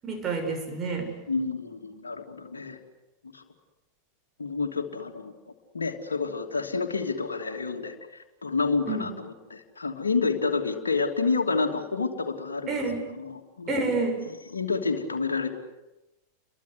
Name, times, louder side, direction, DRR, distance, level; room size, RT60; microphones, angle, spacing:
voice 1, 0.0-1.1 8.9-9.1 12.7-13.0 13.7-14.2, right 3 dB, 25° right, 3 dB, 7.6 m, -28 dB
voice 2, 1.3-2.8 3.3-3.4 4.4-5.3 5.7-12.7 13.1-15.6, left 4 dB, 75° left, 2 dB, 3.0 m, -29 dB
30.0 x 23.5 x 8.4 m, 0.99 s
figure-of-eight pair, 90°, 0 cm